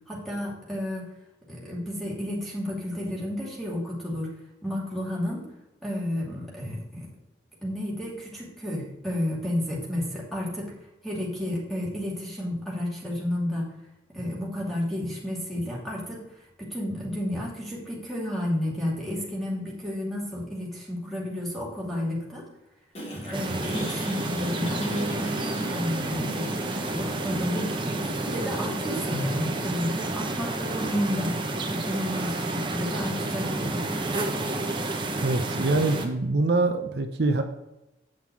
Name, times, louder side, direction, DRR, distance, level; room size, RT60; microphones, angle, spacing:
voice 1, 0.1-1.1 1.5-4.3 4.6-5.4 5.8-7.1 7.6-10.7 11.0-13.7 14.1-16.3 16.6-22.5 23.1-26.5 26.9-31.4 31.7-33.8, left 1 dB, ahead, -4 dB, 2.6 m, -31 dB
sound 1, 23.0-27.9, equal, 35° left, 3.5 m, -40 dB
sound 2, 23.3-36.1, right 2 dB, 25° right, 1.0 m, -30 dB
voice 2, 35.1-37.4, right 2 dB, 65° right, 5 dB, 0.8 m, -24 dB
9.0 x 5.8 x 4.8 m, 0.95 s
head